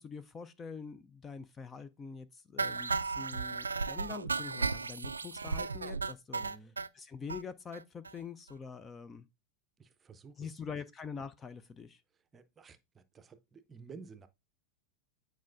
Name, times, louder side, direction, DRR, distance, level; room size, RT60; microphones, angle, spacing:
voice 1, 0.0-9.3 10.4-12.0, left 6 dB, 20° left, 0.4 m, -45 dB
sound 1, 2.6-6.9 7.3-7.4 7.7-7.8 8.1-8.2 8.5-8.6, right 4 dB, 75° right, 0.3 m, -35 dB
voice 2, 6.4-6.7 9.8-10.3 12.3-12.8 13.1-14.3, right 5 dB, 20° right, 0.6 m, -52 dB
9.3 x 4.5 x 2.5 m
figure-of-eight pair, 90°, 0 cm